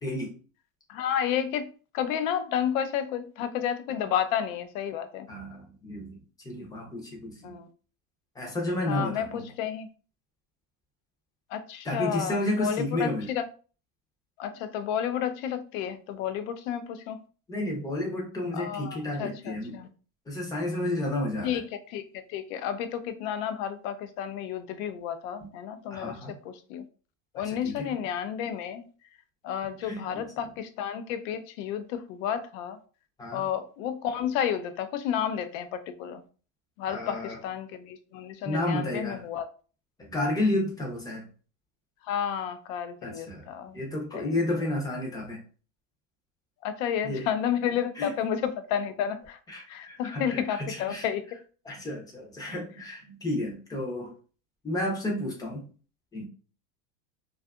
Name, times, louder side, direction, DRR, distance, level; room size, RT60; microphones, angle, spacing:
voice 1, 0.9-5.3 7.4-7.7 8.9-9.9 11.5-13.4 14.4-17.2 18.5-19.9 21.4-26.8 27.3-28.8 29.4-32.8 33.3-36.2 36.8-39.5 42.0-43.8 44.1-44.4 46.6-49.4 49.7-51.3, left 9 dB, 75° left, 0.5 m, -31 dB
voice 2, 5.3-6.2 6.4-7.6 8.4-9.4 11.8-13.3 17.5-19.8 20.3-21.5 25.4-25.5 25.9-26.4 27.4-27.9 29.8-30.3 33.2-33.4 36.9-37.4 38.4-39.2 40.0-41.2 43.0-43.5 43.7-45.4 47.0-47.3 48.0-48.1 49.5-51.1 51.7-54.1 54.6-55.7 56.1-56.3, left 1 dB, 10° left, 0.5 m, -31 dB
2.5 x 2.4 x 2.3 m
supercardioid pair, 150°, 40 cm